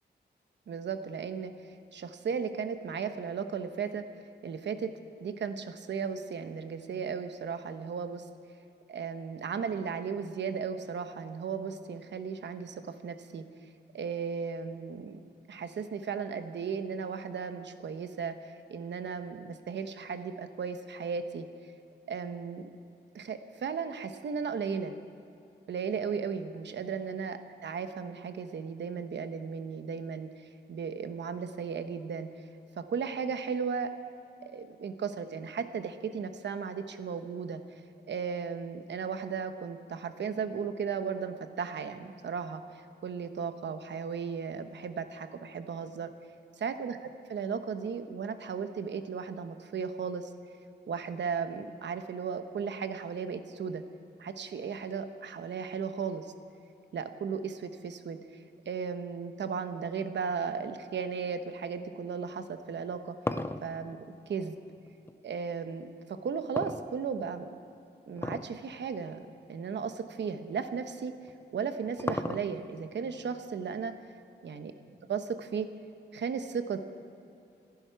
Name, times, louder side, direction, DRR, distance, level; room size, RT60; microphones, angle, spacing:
voice 1, 0.7-4.0 4.4-4.9 5.2-8.3 8.9-13.4 13.9-15.2 15.5-21.5 22.1-22.7 23.1-24.9 25.7-30.3 30.7-32.3 32.8-33.9 34.4-37.6 38.1-46.1 46.6-47.0 47.3-50.3 50.9-53.8 54.2-56.3 56.9-63.2 63.6-64.0 64.3-64.6 65.2-67.5 68.1-71.1 71.5-73.9 74.4-74.7 75.1-75.7 76.1-76.8, right 6 dB, 80° right, 9 dB, 1.0 m, -35 dB
sound 1, 62.7-65.2 66.6-67.4 68.2-68.6 68.9-69.0 69.8-69.9 71.3-72.8, left 2 dB, 15° left, 0.6 m, -35 dB
26.5 x 10.5 x 4.6 m, 2.7 s
wide cardioid pair, 110°, 18 cm